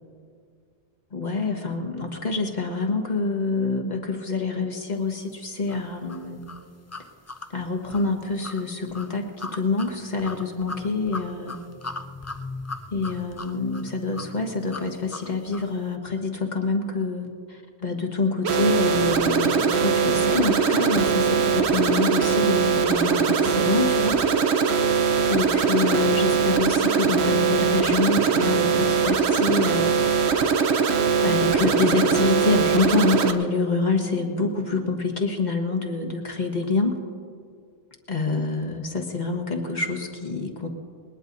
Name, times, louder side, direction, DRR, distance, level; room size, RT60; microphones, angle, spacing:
voice 1, 1.1-6.4 7.5-11.6 12.9-24.2 25.3-29.9 31.2-37.0 38.1-40.7, left 4 dB, 45° left, 3 dB, 1.5 m, -26 dB
sound 1, 5.7-15.8, left 3 dB, 25° left, 0.4 m, -39 dB
sound 2, 18.4-33.3, right 6 dB, 90° right, 1.1 m, -21 dB
20.5 x 20.0 x 2.7 m, 2.2 s
omnidirectional pair, 1.1 m